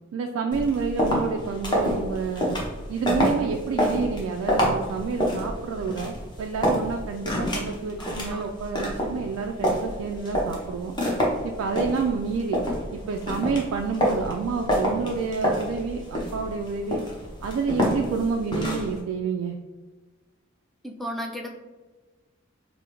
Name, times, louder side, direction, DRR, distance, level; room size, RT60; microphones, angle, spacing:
voice 1, 0.1-2.6 2.9-10.9 11.4-12.6 13.1-17.0 17.4-19.6, right 5 dB, 85° right, 2 dB, 0.3 m, -29 dB
sound 1, 0.5-19.0, equal, 20° left, 0.7 m, -28 dB
voice 2, 8.0-8.4 20.8-21.5, equal, ahead, 0 dB, 0.3 m, -34 dB
4.8 x 2.0 x 2.9 m, 1.3 s
head